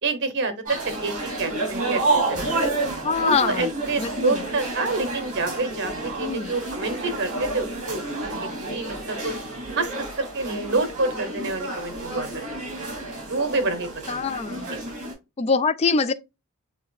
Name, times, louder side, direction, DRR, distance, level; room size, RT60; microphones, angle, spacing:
voice 1, 0.0-2.6 3.2-9.3 9.8-12.4 12.8-12.9 13.3-14.2 14.7-14.8, right 3 dB, 50° right, 0.9 m, -28 dB
sound 1, 0.7-15.1, right 2 dB, 35° right, 2.7 m, -30 dB
voice 2, 3.0-3.7 4.0-4.4 6.2-6.5 14.1-14.7 15.4-16.1, left 5 dB, 30° left, 0.3 m, -24 dB
6.7 x 3.3 x 2.4 m
head